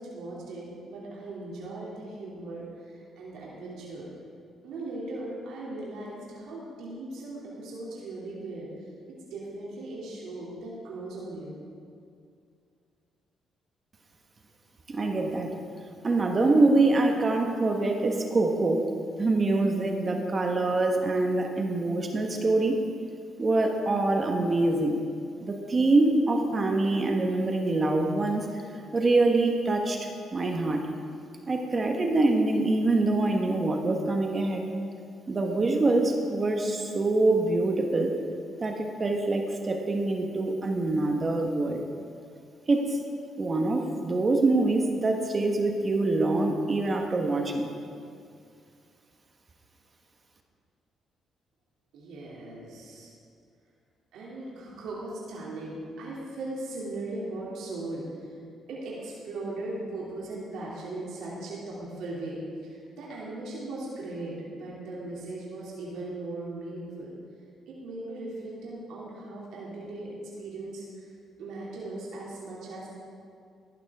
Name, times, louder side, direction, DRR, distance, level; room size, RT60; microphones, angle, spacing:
voice 1, 0.0-4.1 4.6-11.5 51.9-53.1 54.1-58.4 58.7-67.1 67.7-71.1 71.4-72.9, right 2 dB, 85° right, -6 dB, 2.8 m, -38 dB
voice 2, 14.9-15.5 16.0-18.9 19.2-22.8 23.4-25.0 25.4-28.5 28.9-30.9 31.5-34.6 35.3-38.1 38.6-41.8 42.7-43.0 43.4-47.7, right 2 dB, 35° right, 3 dB, 1.3 m, -25 dB
15.0 x 11.5 x 3.6 m, 2.3 s
cardioid pair, 90°, 0 cm